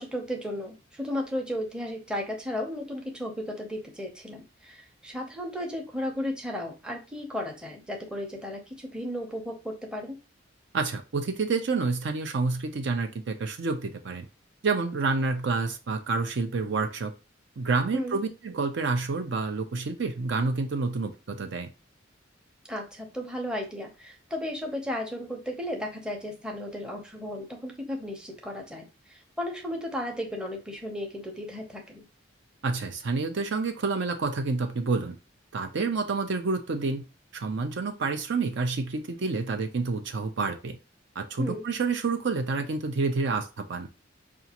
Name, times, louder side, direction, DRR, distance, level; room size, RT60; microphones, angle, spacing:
voice 1, 0.0-10.2 17.9-18.2 22.7-32.0 41.4-41.7, left 1 dB, 5° right, 0.7 m, -34 dB
voice 2, 10.7-14.2 14.6-17.1 17.6-21.7 32.6-35.2 35.5-37.0 37.3-40.8 41.2-43.9, right 4 dB, 65° right, 0.5 m, -28 dB
5.1 x 2.4 x 2.9 m
head